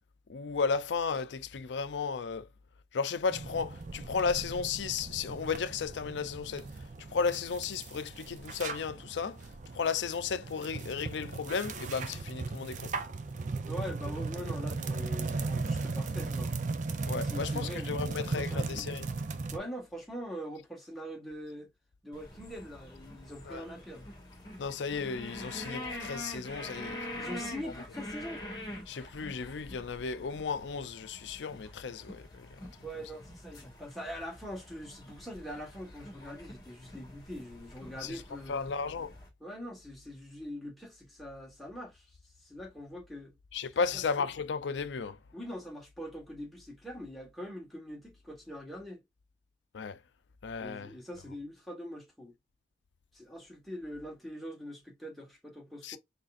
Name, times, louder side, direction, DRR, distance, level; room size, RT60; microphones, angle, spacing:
voice 1, 0.3-2.4 2.9-6.7 7.1-9.4 9.7-12.9 17.1-19.1 23.5-23.6 24.6-27.0 28.9-32.5 38.0-38.1 38.5-39.1 43.5-45.2 49.7-50.0 50.4-50.9 55.8-56.0, left 5 dB, 90° left, 0.5 m, -34 dB
sound 1, 3.3-19.6, right 3 dB, 45° right, 0.5 m, -37 dB
voice 2, 13.7-16.5 17.2-18.9 19.5-21.7 22.0-24.1 27.1-28.4 32.8-38.8 39.4-42.1 42.4-43.4 43.8-44.0 45.3-49.0 50.6-52.3 53.1-56.0, equal, ahead, 1.4 m, -43 dB
sound 2, 22.1-39.3, left 1 dB, 25° left, 1.4 m, -45 dB
4.1 x 3.4 x 2.4 m
head